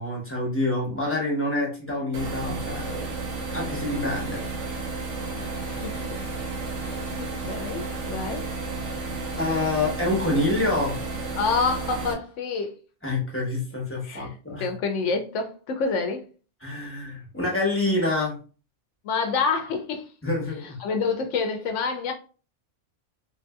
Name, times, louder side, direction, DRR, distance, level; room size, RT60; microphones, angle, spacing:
voice 1, 0.0-3.1 3.5-4.4 9.3-10.9 13.0-14.7 16.6-18.4 20.2-20.8, left 2 dB, 10° left, 0.9 m, -27 dB
sound 1, 2.1-12.1, right 3 dB, 80° right, 1.1 m, -32 dB
voice 2, 5.4-6.2 6.8-8.5 11.4-12.8 14.0-14.3 14.6-16.2 19.0-20.1 20.8-22.1, left 4 dB, 80° left, 0.9 m, -28 dB
3.5 x 2.7 x 2.2 m
omnidirectional pair, 1.2 m